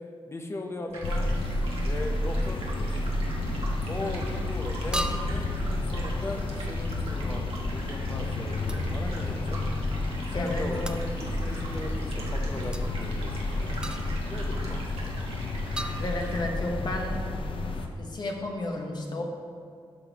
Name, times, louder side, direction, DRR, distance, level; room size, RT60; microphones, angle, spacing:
voice 1, 0.3-1.3 1.8-2.9 3.9-9.6 10.3-15.2, left 2 dB, 30° left, 4 dB, 0.8 m, -38 dB
Stream, 0.9-16.4, right 2 dB, 85° right, 1.4 m, -42 dB
sound 1, 1.0-17.9, left 2 dB, 65° left, 0.7 m, -31 dB
sound 2, 3.6-3.8 4.9-5.5 8.7-8.9 10.9-11.1 12.7-12.8 13.8-14.3 15.8-16.6, right 1 dB, 10° right, 0.4 m, -36 dB
voice 2, 10.3-10.7 15.9-17.3 18.0-19.2, left 2 dB, 50° left, 1 dB, 1.2 m, -32 dB
12.0 x 6.1 x 3.0 m, 2.3 s
wide cardioid pair, 110°, 10 cm